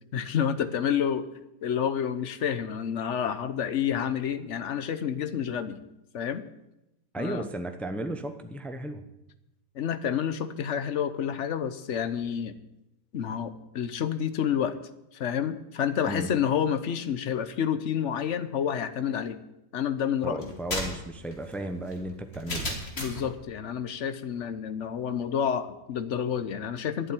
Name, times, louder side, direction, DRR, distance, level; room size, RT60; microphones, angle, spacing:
voice 1, 0.1-1.3 1.6-5.8 6.1-6.4 7.2-7.5 9.7-12.5 13.1-14.8 15.1-19.4 19.7-20.6 23.0-27.1, left 8 dB, 55° left, 12 dB, 1.0 m, -29 dB
voice 2, 7.1-9.1 16.1-16.3 20.2-22.8, right 1 dB, ahead, 7 dB, 0.5 m, -34 dB
sound 1, 20.4-23.3, left 1 dB, 40° left, 2.5 m, -34 dB
12.0 x 7.5 x 9.8 m, 0.91 s
omnidirectional pair, 1.8 m